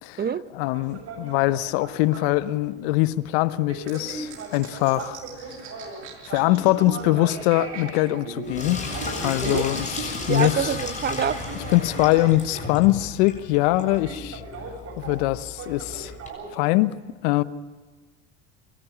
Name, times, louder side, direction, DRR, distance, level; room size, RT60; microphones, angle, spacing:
voice 1, 0.5-5.2 6.3-8.9 9.2-10.7 11.7-14.4 15.0-16.1 16.5-17.0 17.2-17.4, left 18 dB, 70° left, 1.0 m, -23 dB
sound 1, 0.7-16.8, right 4 dB, 45° right, 6.6 m, -40 dB
sound 2, 3.9-10.8, right 6 dB, 75° right, 5.8 m, -39 dB
Sink (filling or washing), 8.4-16.3, left 3 dB, 20° left, 7.3 m, -34 dB
voice 2, 10.3-11.4, right 7 dB, 30° right, 1.0 m, -26 dB
25.0 x 13.5 x 10.0 m
hypercardioid pair, 85°, 33 cm